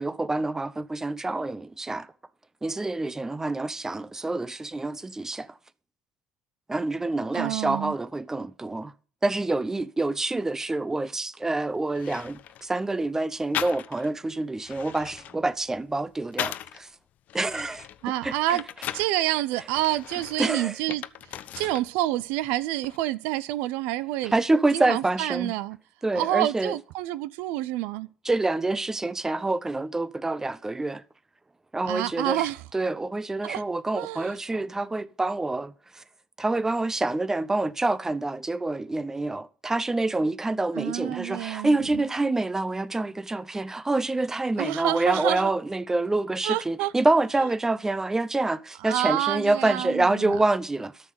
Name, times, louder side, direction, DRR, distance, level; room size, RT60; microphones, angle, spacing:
voice 1, 0.0-2.1 2.6-5.5 6.7-8.9 9.2-16.9 17.3-17.9 18.2-18.4 20.4-20.8 21.5-21.6 24.3-25.5 26.0-26.8 28.2-31.0 31.7-32.5 32.7-36.0 36.4-51.0, right 2 dB, 15° right, 0.7 m, -27 dB
voice 2, 7.3-7.9 18.0-18.6 18.9-21.0 21.6-24.3 24.7-25.8 26.1-28.1 31.8-32.6 33.4-33.6 33.9-34.4 40.8-41.7 44.6-45.5 46.4-46.9 48.8-50.4, right 15 dB, 75° right, 0.5 m, -28 dB
sound 1, 11.5-11.6 11.9-12.7 13.5-14.2 14.5-16.8 17.3-19.2 19.7-21.9 22.2-23.0, left 11 dB, 60° left, 0.7 m, -37 dB
13.0 x 6.4 x 5.3 m
hypercardioid pair, 70°, 3 cm